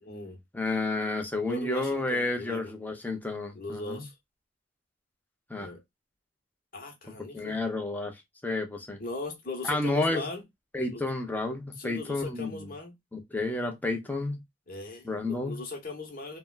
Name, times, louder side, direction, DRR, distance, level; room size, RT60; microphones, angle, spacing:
voice 1, 0.0-0.4 1.5-2.7 3.5-4.1 5.5-5.8 6.7-7.6 9.0-10.4 10.9-11.0 11.8-13.0 14.7-16.4, left 3 dB, 50° left, 1.1 m, -39 dB
voice 2, 0.5-4.0 5.5-5.7 7.3-8.1 8.4-9.0 9.6-10.3 10.7-12.7 13.1-14.4 15.0-15.6, left 2 dB, 10° left, 0.7 m, -31 dB
3.4 x 2.2 x 2.3 m
head